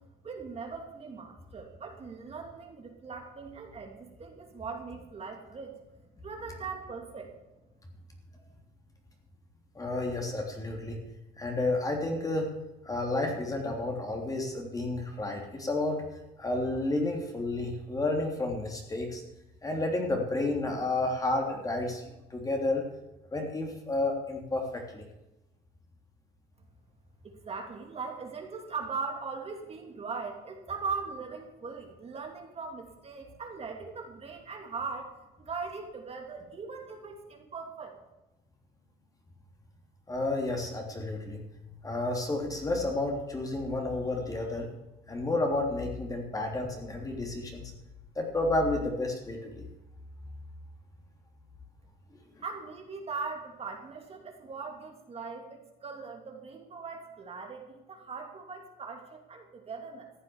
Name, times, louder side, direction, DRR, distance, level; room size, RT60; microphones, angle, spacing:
voice 1, 0.2-5.7 6.2-7.3 27.2-37.9 52.4-60.1, right 4 dB, 35° right, 2 dB, 2.8 m, -40 dB
voice 2, 9.7-11.0 11.4-12.5 12.8-16.0 16.4-19.2 19.6-22.8 23.3-25.0 40.1-41.4 41.8-44.7 45.1-47.7 48.1-49.7, left 2 dB, 20° left, 1 dB, 3.3 m, -31 dB
14.5 x 8.3 x 7.3 m, 0.99 s
cardioid pair, 110°, 17 cm